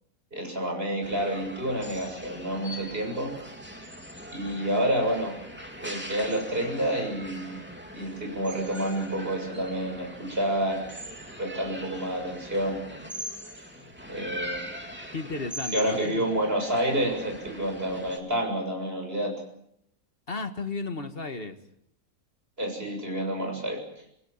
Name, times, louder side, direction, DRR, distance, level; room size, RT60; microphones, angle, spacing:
voice 1, 0.3-3.3 4.3-5.4 5.7-7.6 7.9-10.8 11.4-12.8 14.1-14.6 15.7-19.4 22.6-23.8, right 1 dB, 40° right, 7.4 m, -29 dB
sound 1, 1.0-18.2, equal, 5° right, 3.2 m, -41 dB
voice 2, 15.1-16.3 20.3-21.6, left 3 dB, 40° left, 1.9 m, -34 dB
28.0 x 20.5 x 7.4 m
omnidirectional pair, 1.6 m